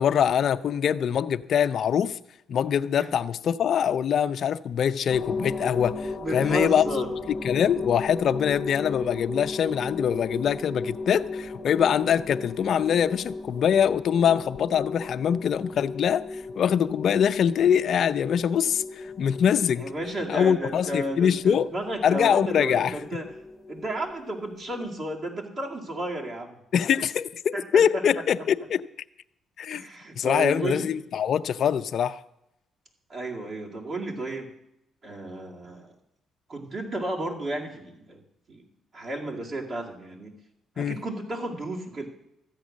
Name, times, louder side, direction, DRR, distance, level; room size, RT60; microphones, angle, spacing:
voice 1, 0.0-2.2 2.5-6.8 7.3-19.9 20.3-21.7 22.0-23.0 26.7-28.8 29.6-29.8 30.2-32.2 40.8-41.0, left 8 dB, 60° left, 0.4 m, -24 dB
sound 1, 5.1-24.9, left 3 dB, 35° left, 0.9 m, -36 dB
voice 2, 6.2-7.1 19.8-23.2 23.7-26.6 27.5-28.0 29.7-30.9 33.1-34.5 35.0-35.9 36.5-38.2 38.5-38.6 38.9-40.3 40.8-42.1, right 1 dB, 50° right, 2.2 m, -33 dB
13.0 x 8.3 x 6.3 m
cardioid pair, 90°, 0 cm